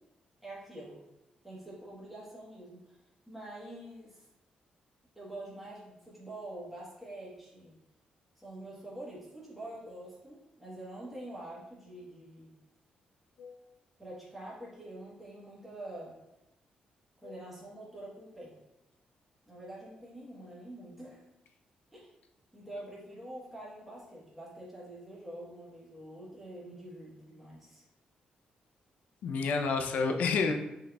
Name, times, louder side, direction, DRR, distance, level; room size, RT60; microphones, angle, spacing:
voice 1, 0.4-1.0 1.4-3.0 3.3-4.3 5.1-7.7 8.4-12.5 14.0-16.2 17.2-18.5 19.5-21.2 21.9-22.1 22.5-27.8, right 1 dB, 5° right, -7 dB, 1.2 m, -46 dB
voice 2, 29.2-30.5, left 4 dB, 90° left, 4 dB, 0.5 m, -29 dB
5.8 x 3.8 x 2.3 m, 0.93 s
cardioid pair, 140°, 3 cm